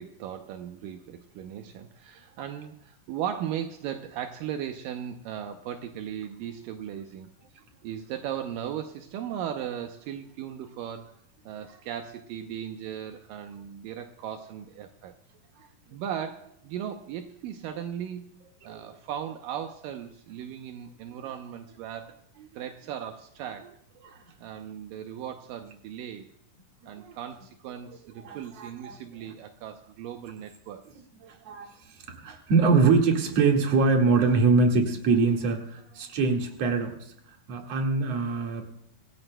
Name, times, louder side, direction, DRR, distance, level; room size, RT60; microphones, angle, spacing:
voice 1, 0.0-7.3 7.8-11.2 11.5-15.1 15.9-22.2 22.5-23.8 24.4-26.3 26.9-30.8, right 9 dB, 80° right, 6 dB, 2.4 m, -37 dB
voice 2, 28.2-29.0 31.2-31.8 32.1-37.1 37.5-38.6, right 4 dB, 50° right, 2 dB, 2.8 m, -24 dB
26.0 x 15.5 x 2.2 m, 0.71 s
omnidirectional pair, 4.0 m